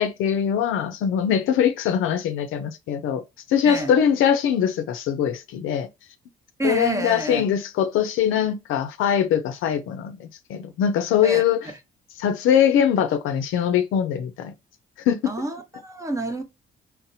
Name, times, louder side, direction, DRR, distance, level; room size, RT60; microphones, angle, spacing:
voice 1, 0.0-3.2 3.5-5.9 6.6-11.7 12.2-14.5 15.1-15.3, left 8 dB, 85° left, 0.5 m, -22 dB
voice 2, 3.6-3.9 6.6-7.4 11.2-11.4 15.2-16.4, right 2 dB, 15° right, 0.7 m, -28 dB
4.0 x 2.1 x 2.6 m
cardioid pair, 90°, 20 cm